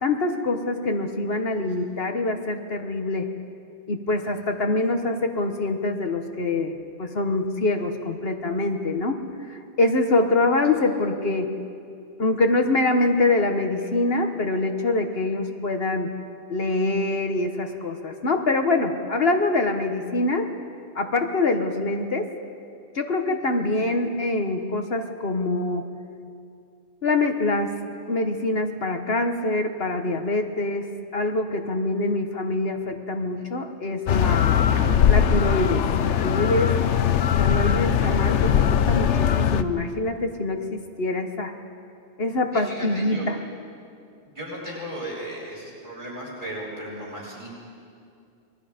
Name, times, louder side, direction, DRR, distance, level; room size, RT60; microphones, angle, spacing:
voice 1, 0.0-3.3 3.9-9.2 9.5-11.5 12.2-16.1 16.5-20.5 20.9-22.3 22.9-25.9 27.0-27.7 28.1-34.7 35.1-36.8 37.4-41.5 42.2-43.4, left 2 dB, 60° left, 5 dB, 1.4 m, -25 dB
sound 1, 34.1-39.6, left 8 dB, 80° left, 1.1 m, -20 dB
voice 2, 42.5-43.2 44.2-47.6, right 1 dB, 45° right, -6 dB, 8.3 m, -36 dB
27.5 x 22.0 x 5.1 m, 2.4 s
omnidirectional pair, 1.2 m